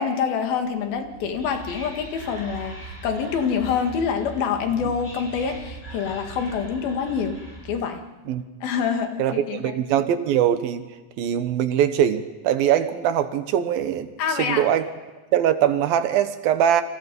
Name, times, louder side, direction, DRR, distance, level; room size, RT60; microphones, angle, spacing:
voice 1, 0.0-7.4 7.7-8.0 8.6-9.8 14.2-14.6, left 6 dB, 85° left, 5 dB, 3.9 m, -26 dB
Whispering, 1.0-7.9, right 2 dB, 15° left, 7.6 m, -40 dB
voice 2, 9.2-10.8 11.2-14.9 15.3-16.8, right 10 dB, 80° right, 10 dB, 3.0 m, -22 dB
29.5 x 26.5 x 5.4 m, 1.2 s
omnidirectional pair, 4.1 m